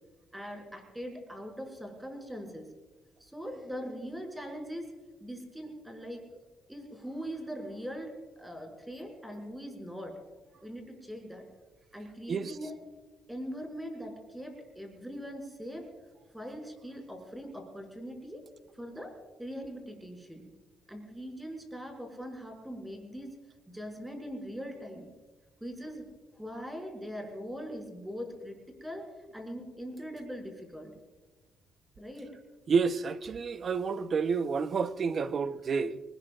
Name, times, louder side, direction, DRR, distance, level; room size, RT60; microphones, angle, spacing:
voice 1, 0.3-2.7 3.2-4.9 5.2-6.2 6.7-10.2 10.6-11.4 11.9-12.7 13.3-15.9 16.3-18.5 18.7-19.1 19.4-20.5 20.9-23.4 23.7-25.1 25.6-26.1 26.3-30.9 32.0-32.4, equal, 5° right, 6.2 m, -41 dB
voice 2, 32.7-36.0, right 5 dB, 50° right, 0.9 m, -29 dB
25.0 x 20.0 x 2.5 m
cardioid pair, 90°, 0 cm